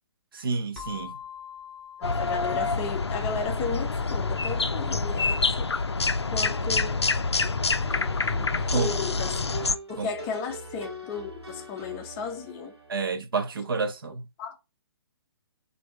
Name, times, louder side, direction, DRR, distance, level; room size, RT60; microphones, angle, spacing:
voice 1, 0.3-1.2 8.7-8.9 10.0-10.1 12.9-14.2, right 4 dB, 60° right, 0.8 m, -29 dB
sound 1, 0.8-5.2, left 8 dB, ahead, 0.9 m, -46 dB
sound 2, 2.0-9.8, left 4 dB, 85° left, 0.4 m, -27 dB
voice 2, 2.0-5.8 6.3-7.0 7.4-7.5 8.7-9.4 9.9-12.7 14.4-14.6, left 5 dB, 20° left, 0.5 m, -34 dB
sound 3, 7.8-13.0, right 1 dB, 85° right, 1.3 m, -42 dB
3.4 x 2.6 x 4.3 m
figure-of-eight pair, 130°, 14 cm